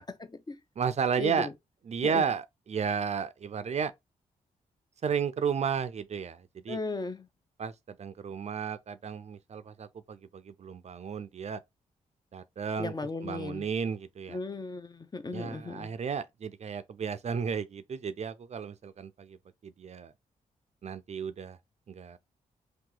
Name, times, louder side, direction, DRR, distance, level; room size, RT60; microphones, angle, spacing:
voice 1, 0.0-0.6 1.2-1.5 2.0-2.2 6.7-7.3 12.8-13.6 14.3-15.9, left 3 dB, 30° left, 0.6 m, -36 dB
voice 2, 0.8-1.5 1.8-3.9 5.0-6.8 7.6-11.6 12.3-14.4 15.3-19.4 19.6-20.1 20.8-21.6 21.9-22.2, right 6 dB, 50° right, 0.5 m, -33 dB
2.9 x 2.3 x 3.8 m
cardioid pair, 65°, 15 cm